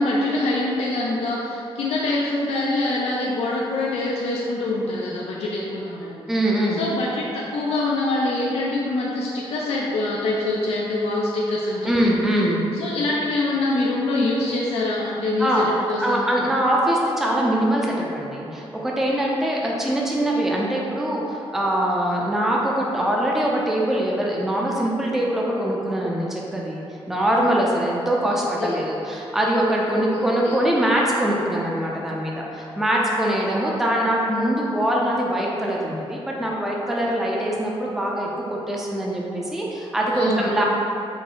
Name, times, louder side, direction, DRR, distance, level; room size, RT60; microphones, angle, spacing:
voice 1, 0.0-6.2 6.7-11.9 12.7-15.5 15.9-16.3 28.3-28.8 29.9-30.6 40.1-40.6, left 2 dB, 85° left, -4 dB, 0.4 m, -25 dB
voice 2, 6.3-6.8 11.8-12.6 15.4-15.7 16.0-40.6, right 1 dB, 5° right, -3 dB, 0.4 m, -23 dB
4.7 x 2.0 x 3.8 m, 2.8 s
wide cardioid pair, 130°, 10 cm